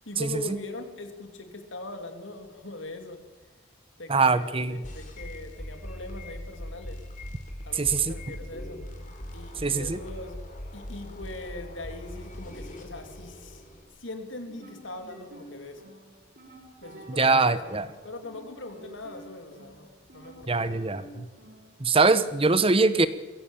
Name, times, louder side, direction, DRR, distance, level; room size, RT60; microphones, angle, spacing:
voice 1, 0.1-3.2 4.0-7.0 7.7-8.8 9.3-10.4 10.7-13.6 14.0-15.9 16.8-21.0, left 2 dB, 80° left, 6 dB, 3.0 m, -41 dB
voice 2, 4.1-4.8 7.7-8.1 9.6-10.0 17.2-17.9 20.5-21.2 21.8-23.1, right 3 dB, 30° right, 14 dB, 1.0 m, -23 dB
sound 1, 4.8-13.8, left 1 dB, 40° left, 3.7 m, -40 dB
sound 2, 14.5-21.8, right 1 dB, 45° right, 5.6 m, -50 dB
21.5 x 16.5 x 9.0 m, 1.2 s
head